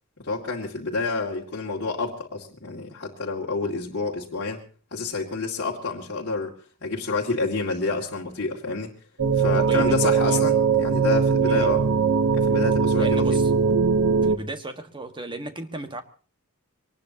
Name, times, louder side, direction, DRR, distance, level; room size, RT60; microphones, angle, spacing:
voice 1, 0.2-4.6 4.9-6.5 6.8-8.9 9.3-11.8 12.3-13.4, left 3 dB, 55° left, -4 dB, 2.4 m, -28 dB
sound 1, 9.2-14.4, right 5 dB, 80° right, 1.1 m, -20 dB
voice 2, 9.4-10.4 11.4-11.8 12.9-13.5 14.2-16.0, right 2 dB, 20° right, 7 dB, 1.6 m, -35 dB
23.5 x 19.5 x 2.9 m, 0.39 s
head